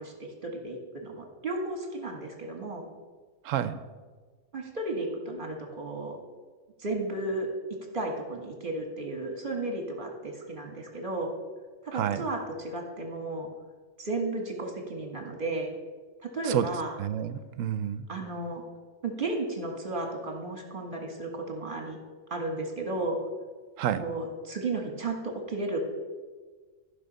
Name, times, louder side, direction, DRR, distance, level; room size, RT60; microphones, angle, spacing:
voice 1, 0.0-2.8 4.5-6.2 6.8-7.5 7.9-11.3 11.8-13.5 14.0-15.7 16.2-16.9 18.1-18.6 19.0-22.0 22.3-23.2 23.9-25.8, right 2 dB, 40° right, 2 dB, 1.9 m, -34 dB
voice 2, 3.4-3.8 11.9-12.3 16.4-16.7 17.0-18.0 23.8-24.0, right 10 dB, 80° right, 13 dB, 1.0 m, -29 dB
14.5 x 5.7 x 5.4 m, 1.4 s
omnidirectional pair, 1.4 m